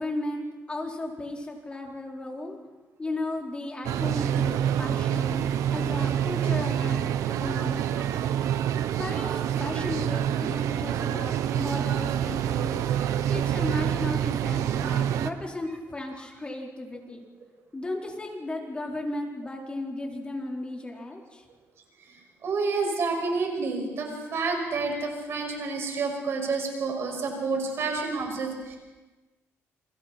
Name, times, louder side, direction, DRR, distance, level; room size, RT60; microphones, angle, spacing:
voice 1, 0.0-2.6 3.0-7.1 7.4-8.5 9.0-12.9 13.3-17.3 17.7-21.5, left 2 dB, 20° left, 0 dB, 4.3 m, -35 dB
sound 1, 3.8-15.3, right 10 dB, 85° right, 1.0 m, -27 dB
voice 2, 22.4-28.8, right 4 dB, 55° right, 2 dB, 6.2 m, -29 dB
29.0 x 23.5 x 4.4 m, 1.2 s
cardioid pair, 110°, 5 cm